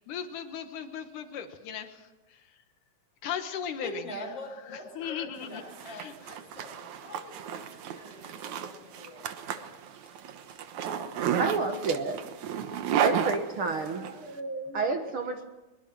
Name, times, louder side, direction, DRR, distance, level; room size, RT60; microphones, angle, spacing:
voice 1, 0.1-2.4 3.2-4.0 5.0-6.1, left 8 dB, 80° left, 7 dB, 2.8 m, -37 dB
voice 2, 3.8-10.6, left 1 dB, 50° left, 1 dB, 6.3 m, -45 dB
Zipper (clothing), 5.4-14.1, right 8 dB, 70° right, 2.4 m, -33 dB
voice 3, 11.4-12.2 12.6-12.7 13.0-15.4, right 4 dB, 55° right, 5 dB, 1.9 m, -30 dB
22.5 x 22.0 x 6.1 m, 1.1 s
omnidirectional pair, 3.5 m